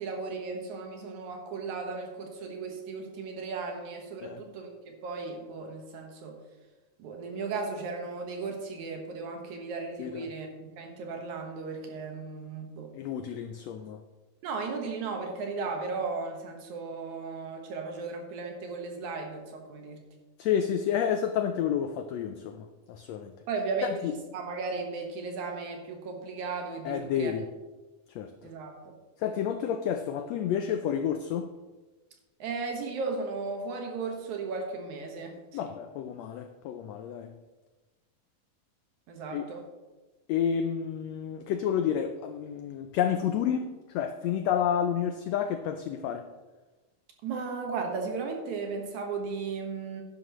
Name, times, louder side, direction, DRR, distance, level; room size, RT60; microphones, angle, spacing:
voice 1, 0.0-6.4 7.0-12.9 14.4-20.1 23.5-27.3 28.4-28.9 32.4-35.7 39.1-39.7 47.2-50.0, right 4 dB, 70° right, 2 dB, 2.7 m, -36 dB
voice 2, 10.0-10.3 12.9-14.0 20.4-23.3 24.0-24.1 26.8-27.4 28.1-28.3 29.2-31.5 35.5-37.3 39.3-39.4 40.3-46.3, left 8 dB, 85° left, 7 dB, 1.5 m, -30 dB
11.0 x 10.5 x 3.0 m, 1.2 s
omnidirectional pair, 3.6 m